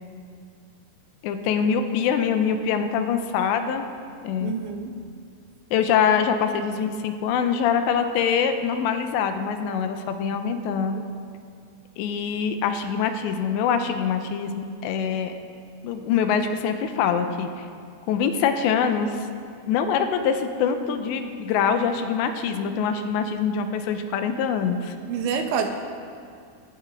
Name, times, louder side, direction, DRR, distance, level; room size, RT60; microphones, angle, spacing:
voice 1, 1.2-3.8 4.2-4.5 5.7-11.0 12.0-15.3 15.8-17.7 18.1-19.2 19.7-24.9, left 7 dB, 90° left, 7 dB, 3.0 m, -24 dB
voice 2, 4.4-4.9 25.1-25.7, right 6 dB, 90° right, 5 dB, 3.4 m, -27 dB
17.5 x 16.5 x 3.7 m, 2.3 s
omnidirectional pair, 5.1 m